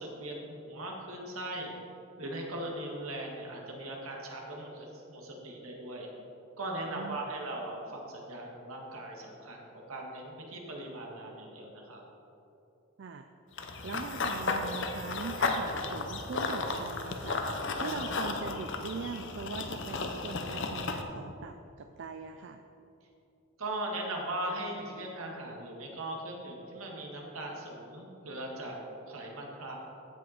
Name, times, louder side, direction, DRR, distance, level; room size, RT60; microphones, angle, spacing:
voice 1, 0.0-1.7 2.2-6.1 6.6-9.6 9.9-12.0 23.6-28.8 29.1-29.8, right 1 dB, 75° right, 0 dB, 1.8 m, -39 dB
voice 2, 6.9-7.3 13.0-13.3 13.8-22.6, right 5 dB, 55° right, 7 dB, 0.4 m, -41 dB
Run / Bird vocalization bird call bird song, 13.6-21.0, left 3 dB, 55° left, 0.8 m, -34 dB
15.5 x 5.4 x 4.3 m, 2.9 s
head